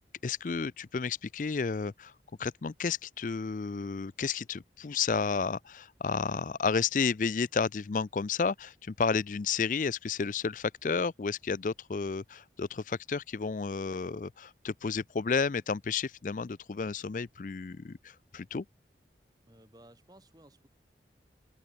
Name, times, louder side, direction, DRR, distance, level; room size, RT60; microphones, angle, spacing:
voice 1, 0.2-2.1 2.4-18.6, left 5 dB, 45° left, 0.4 m, -32 dB
voice 2, 19.4-20.7, right 1 dB, 20° right, 4.9 m, -57 dB
head